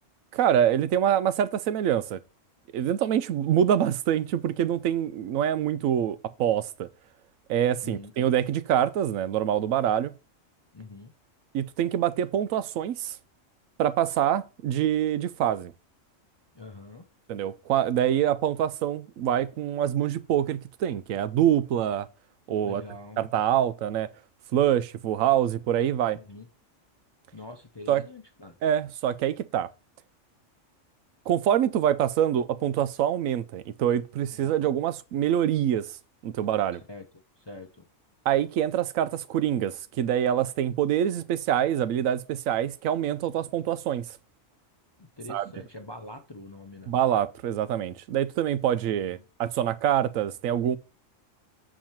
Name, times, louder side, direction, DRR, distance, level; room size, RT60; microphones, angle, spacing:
voice 1, 0.3-2.2 2.7-6.9 7.5-10.1 11.5-13.2 13.8-15.7 17.3-22.1 22.5-22.8 23.2-24.1 24.5-26.2 27.9-28.0 28.6-29.7 31.3-35.9 36.2-36.8 38.3-44.1 45.3-45.4 46.9-50.8, right 10 dB, 85° right, 1.0 m, -25 dB
voice 2, 10.7-11.1 16.5-17.1 22.6-23.3 26.1-26.5 27.3-28.6 34.4-34.6 36.7-37.0 37.4-37.8 45.0-46.9 48.7-49.2, left 2 dB, 30° left, 0.5 m, -44 dB
7.3 x 4.7 x 4.4 m
omnidirectional pair, 1.4 m